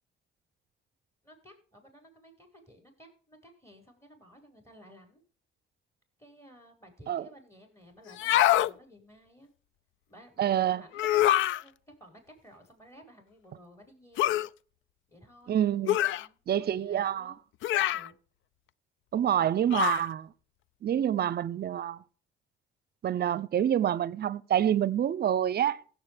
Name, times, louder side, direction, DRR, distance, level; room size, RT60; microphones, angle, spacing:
voice 1, 1.2-5.2 6.2-9.5 10.1-11.7 12.0-14.3 15.1-15.6 16.1-17.4 17.8-18.1, equal, 15° left, 5.4 m, -55 dB
sound 1, 8.1-8.7 10.9-11.6 14.2-14.5 15.9-16.3 17.6-18.1 19.7-20.1, left 13 dB, 80° left, 0.4 m, -25 dB
voice 2, 10.4-10.8 15.5-16.0 16.5-17.3 19.1-20.3 20.8-22.0 23.0-25.8, right 10 dB, 55° right, 0.6 m, -27 dB
16.5 x 7.7 x 3.5 m
cardioid pair, 90°, 20 cm